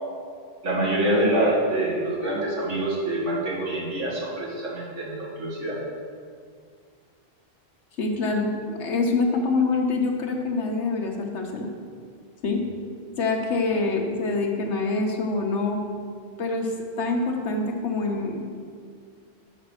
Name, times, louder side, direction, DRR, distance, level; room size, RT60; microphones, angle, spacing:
voice 1, 0.6-5.8, right 1 dB, 85° right, -5 dB, 2.2 m, -25 dB
voice 2, 8.0-11.7 12.4-12.6 13.2-15.8 16.4-18.6, left 3 dB, 70° left, 2 dB, 1.3 m, -25 dB
6.5 x 6.0 x 6.5 m, 2.1 s
omnidirectional pair, 1.2 m